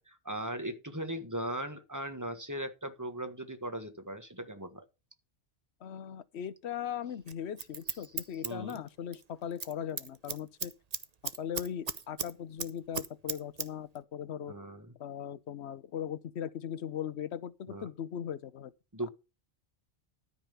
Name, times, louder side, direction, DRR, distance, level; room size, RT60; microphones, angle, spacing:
voice 1, 0.0-4.8 8.4-8.8 14.5-14.9 17.7-17.9 18.9-19.1, right 1 dB, 15° right, 1.5 m, -38 dB
voice 2, 5.8-10.7 11.4-14.5 15.0-18.7, left 9 dB, 80° left, 1.0 m, -39 dB
Scissors, 7.3-9.2 9.5-9.7 10.0-12.3 12.6-13.7 14.0-14.1, right 5 dB, 40° right, 0.9 m, -36 dB
13.0 x 5.4 x 6.8 m
omnidirectional pair, 1.1 m